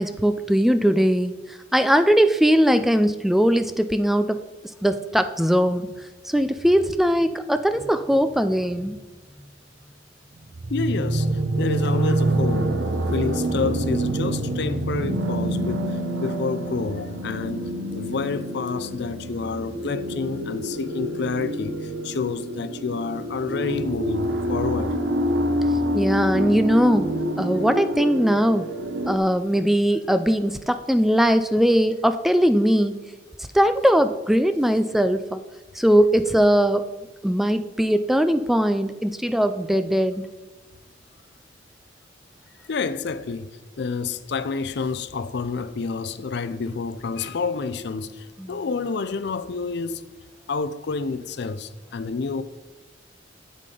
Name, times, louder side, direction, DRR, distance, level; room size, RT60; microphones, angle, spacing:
voice 1, 0.0-4.4 4.8-5.9 6.3-9.0 25.9-27.1 27.4-28.7 29.1-33.0 33.5-35.4 35.8-36.9 37.2-40.3 48.4-48.5, equal, ahead, 0.3 m, -20 dB
sound 1, 10.5-29.2, right 1 dB, 90° right, 0.9 m, -26 dB
voice 2, 10.7-12.7 13.1-17.7 17.9-25.0 42.7-43.5 43.8-50.1 50.5-52.4, left 4 dB, 65° left, 0.5 m, -29 dB
8.3 x 7.3 x 3.8 m
head